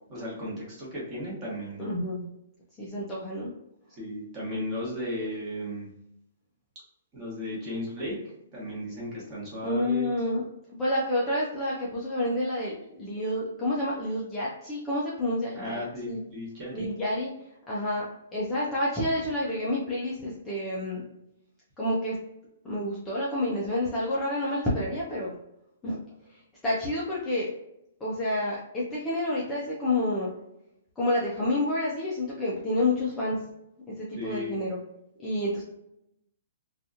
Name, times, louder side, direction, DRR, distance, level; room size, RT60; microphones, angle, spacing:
voice 1, 0.1-1.9 3.9-5.9 7.1-8.2 8.5-10.1 15.5-16.9 34.1-34.6, left 1 dB, 20° right, -6 dB, 1.1 m, -35 dB
voice 2, 1.8-2.3 2.8-3.5 9.6-10.4 10.7-15.8 16.1-16.2 16.7-17.3 17.7-18.0 18.3-21.0 21.8-22.2 22.6-25.3 25.8-26.0 26.3-27.5 28.0-30.3 31.0-33.4 33.9-34.8 35.2-35.6, left 1 dB, 10° left, -8 dB, 0.4 m, -29 dB
2.8 x 2.3 x 2.5 m, 0.82 s
hypercardioid pair, 170°, 0 cm